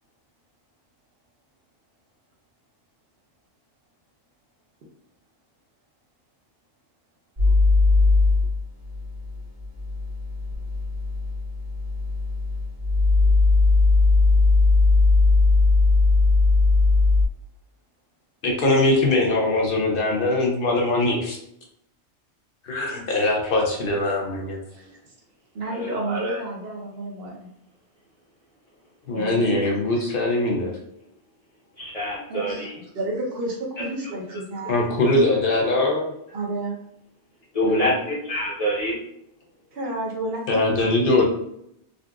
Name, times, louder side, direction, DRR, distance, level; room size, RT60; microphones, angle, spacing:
sound 1, 7.4-17.3, left 3 dB, 35° right, 1.0 m, -19 dB
voice 1, 18.4-21.4 22.6-24.6 29.1-30.8 34.7-36.1 37.6-37.9 40.5-41.2, left 2 dB, 60° left, 0 dB, 0.8 m, -21 dB
voice 2, 24.7-25.0 25.5-27.5 29.1-30.1 32.3-34.8 35.1-35.2 36.3-36.8 39.7-41.1, right 1 dB, 60° right, -1 dB, 1.0 m, -31 dB
voice 3, 31.8-32.7 33.8-33.9 37.5-39.0, equal, 35° left, -5 dB, 1.0 m, -25 dB
3.8 x 2.4 x 2.3 m, 0.76 s
omnidirectional pair, 1.2 m